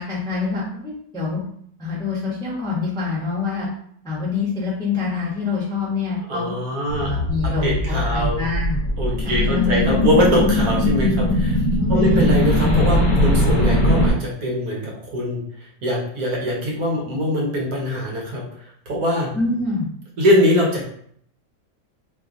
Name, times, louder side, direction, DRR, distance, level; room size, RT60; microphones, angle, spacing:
voice 1, 0.0-1.4 1.8-3.7 4.0-6.5 6.9-8.8 9.2-9.8 11.8-12.3 19.3-19.9, left 4 dB, 5° left, -7 dB, 0.8 m, -25 dB
voice 2, 6.3-7.1 7.6-8.4 9.0-11.6 11.9-15.4 15.8-19.3 20.2-20.9, equal, 65° right, -3 dB, 1.2 m, -22 dB
sound 1, 6.9-14.1, left 1 dB, 40° left, 0.8 m, -20 dB
3.0 x 2.2 x 3.6 m, 0.64 s
omnidirectional pair, 1.8 m